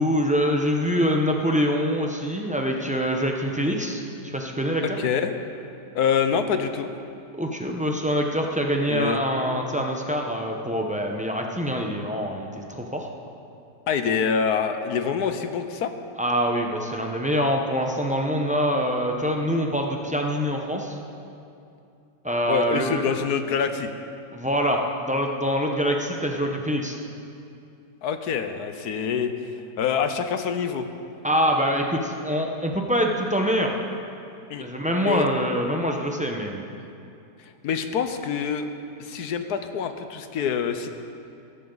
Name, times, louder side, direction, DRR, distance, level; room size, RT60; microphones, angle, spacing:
voice 1, 0.0-4.8 7.3-13.1 16.2-21.0 22.2-23.0 24.3-27.0 31.2-33.7 34.6-36.6, equal, 5° right, 1 dB, 0.6 m, -25 dB
voice 2, 4.8-5.3 5.9-6.9 8.9-9.2 13.9-15.9 22.5-23.9 28.0-29.3 29.8-30.9 34.5-34.7 35.0-35.3 37.6-38.7 39.0-40.9, left 7 dB, 70° left, 8 dB, 1.3 m, -25 dB
16.5 x 14.5 x 4.0 m, 2.6 s
omnidirectional pair, 1.8 m